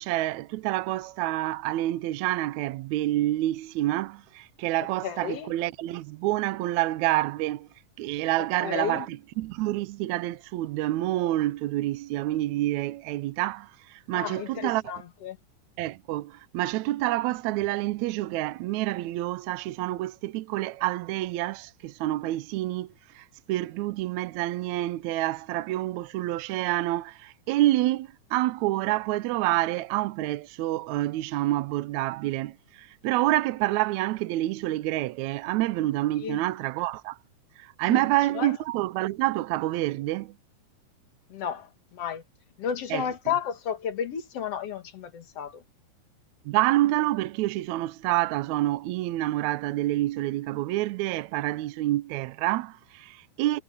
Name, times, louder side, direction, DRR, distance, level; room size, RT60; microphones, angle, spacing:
voice 1, 0.0-7.7 8.0-14.8 15.8-22.9 23.1-37.2 37.6-40.3 42.9-43.1 46.5-53.6, right 16 dB, 80° right, 1.8 m, -28 dB
voice 2, 5.0-5.5 8.6-9.1 14.1-15.4 36.2-36.4 37.8-38.0 38.3-38.5 41.3-42.2 42.6-45.6, left 8 dB, 55° left, 2.5 m, -32 dB
omnidirectional pair, 3.6 m